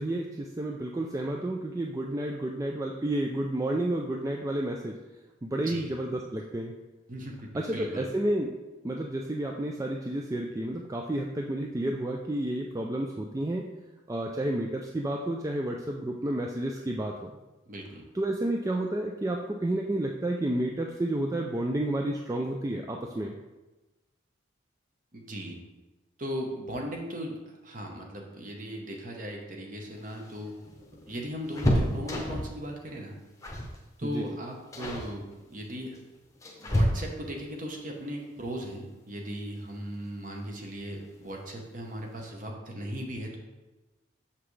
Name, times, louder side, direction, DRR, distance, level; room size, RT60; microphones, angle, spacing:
voice 1, 0.0-4.9 5.4-6.7 7.5-8.5 8.8-13.6 14.1-17.3 18.1-23.3 34.0-34.2, right 1 dB, 15° right, 1 dB, 0.3 m, -31 dB
voice 2, 5.6-5.9 7.1-8.1 17.7-18.0 25.1-25.6 26.2-30.5 31.1-33.2 34.0-36.0 36.6-43.4, equal, 45° right, 1 dB, 1.0 m, -38 dB
sound 1, 29.9-32.6 33.4-33.8 34.0-34.3 34.7-35.1 35.9-37.4 39.1-39.2 39.6-39.7 40.9-41.3 41.6-41.7 42.0-42.2, equal, 15° left, 0.8 m, -30 dB
6.9 x 5.8 x 3.2 m, 1.1 s
head